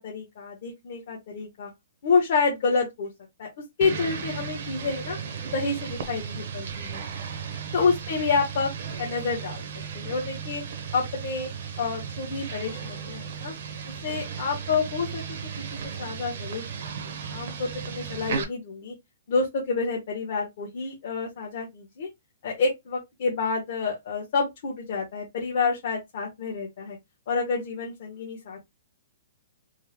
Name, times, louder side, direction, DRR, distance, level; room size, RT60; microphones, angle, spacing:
voice 1, 0.0-1.7 2.0-3.1 3.4-3.5 3.8-5.2 5.5-7.0 7.7-8.7 9.0-9.6 9.9-10.6 10.9-11.5 11.8-13.5 13.8-15.4 16.0-16.7 17.1-18.9 19.3-22.1 22.4-27.0 27.3-28.7, left 4 dB, 45° left, 1.0 m, -28 dB
sound 1, 3.8-18.4, right 6 dB, 50° right, 0.7 m, -35 dB
3.5 x 2.0 x 3.0 m
hypercardioid pair, 175°, 0 cm